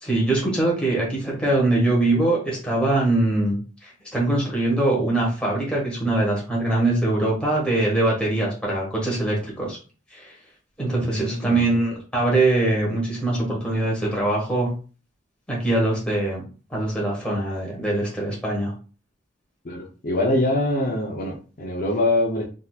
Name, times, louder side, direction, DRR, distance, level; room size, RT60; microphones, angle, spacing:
voice 1, 0.0-3.6 3.8-9.8 10.1-10.3 10.8-14.7 15.5-16.4 16.7-18.7, right 2 dB, 5° left, -4 dB, 1.5 m, -22 dB
voice 2, 11.0-11.7 19.6-22.4, left 1 dB, 45° left, -1 dB, 0.7 m, -24 dB
3.8 x 2.7 x 2.4 m, 0.36 s
head